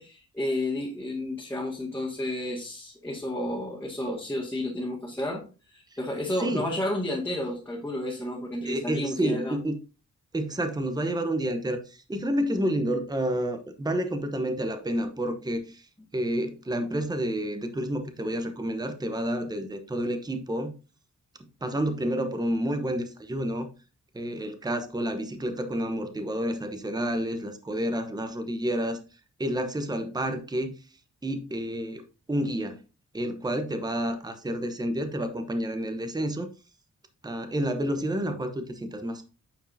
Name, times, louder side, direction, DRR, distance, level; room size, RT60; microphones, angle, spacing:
voice 1, 0.0-5.4 5.7-9.6, left 1 dB, 10° left, -5 dB, 2.0 m, -31 dB
voice 2, 6.3-6.7 8.6-9.8 10.3-15.9 16.1-20.7 21.4-23.7 24.1-29.0 29.4-30.7 31.2-32.0 32.3-32.8 33.1-36.5 37.2-39.2, right 1 dB, 15° right, 7 dB, 0.9 m, -29 dB
9.1 x 4.6 x 2.7 m, 0.32 s
cardioid pair, 95°, 29 cm